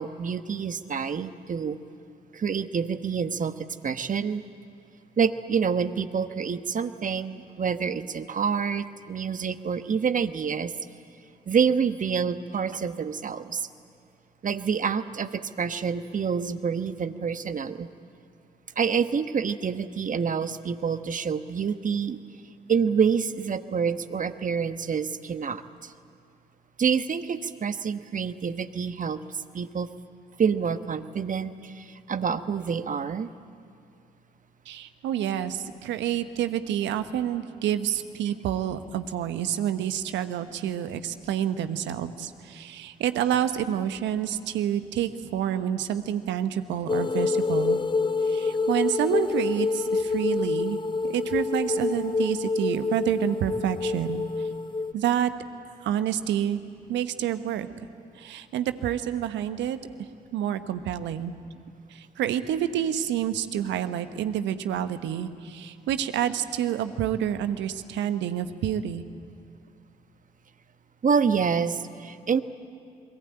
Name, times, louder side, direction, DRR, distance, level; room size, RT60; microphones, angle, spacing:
voice 1, 0.0-1.8 2.3-3.5 3.8-4.4 5.2-10.7 11.5-13.6 14.4-17.9 18.8-22.2 22.7-25.6 26.8-29.2 29.5-29.9 30.4-33.3 71.0-72.4, right 6 dB, 40° right, 11 dB, 1.3 m, -27 dB
voice 2, 34.7-47.8 48.2-50.8 51.0-54.5 54.9-55.3 55.8-56.6 56.9-57.7 58.1-59.8 60.3-61.3 61.9-69.0, right 10 dB, 70° right, 10 dB, 1.2 m, -28 dB
sound 1, 46.9-54.9, left 4 dB, 25° left, 0.8 m, -27 dB
28.0 x 22.0 x 9.0 m, 2.4 s
hypercardioid pair, 45°, 20 cm